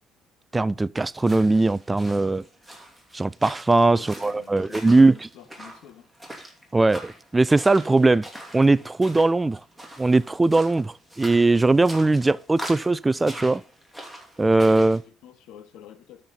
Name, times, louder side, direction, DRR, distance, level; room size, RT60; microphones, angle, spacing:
voice 1, 0.5-2.4 3.1-5.1 6.7-8.2 8.5-9.6 10.0-13.6 14.4-15.0, right 2 dB, 20° right, 0.3 m, -20 dB
sound 1, 1.1-15.0, right 1 dB, ahead, 2.8 m, -43 dB
voice 2, 3.7-5.1 5.3-6.1 14.6-16.2, left 10 dB, 65° left, 1.2 m, -48 dB
12.5 x 4.4 x 5.3 m
hypercardioid pair, 55°, 0 cm